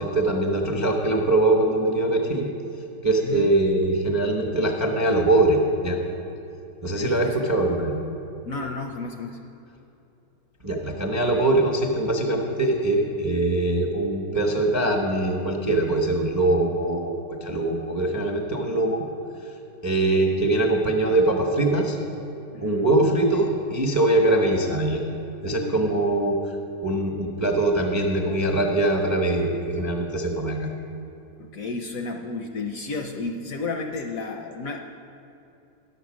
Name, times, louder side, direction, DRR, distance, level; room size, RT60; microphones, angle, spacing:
voice 1, 0.0-2.5 3.0-6.0 6.8-8.0 10.6-19.0 19.8-22.0 22.6-25.0 25.4-26.4 26.8-30.7, right 2 dB, 25° right, 1 dB, 0.3 m, -22 dB
voice 2, 7.0-7.5 8.4-9.4 22.5-22.9 25.4-26.0 31.4-34.8, left 3 dB, 70° left, 4 dB, 0.8 m, -32 dB
11.0 x 7.9 x 6.1 m, 2.8 s
omnidirectional pair, 1.9 m